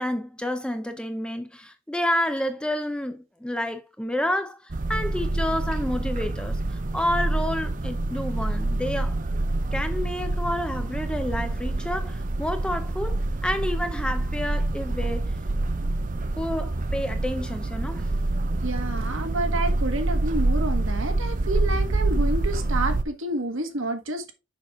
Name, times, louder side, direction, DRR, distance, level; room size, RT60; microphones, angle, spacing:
voice 1, 0.0-9.1 9.7-15.4 16.4-18.1, left 1 dB, 5° left, 0.6 m, -29 dB
sound 1, 4.7-23.0, right 2 dB, 40° right, 0.6 m, -26 dB
voice 2, 18.6-24.3, right 2 dB, 65° right, 1.6 m, -29 dB
6.7 x 6.1 x 3.7 m
head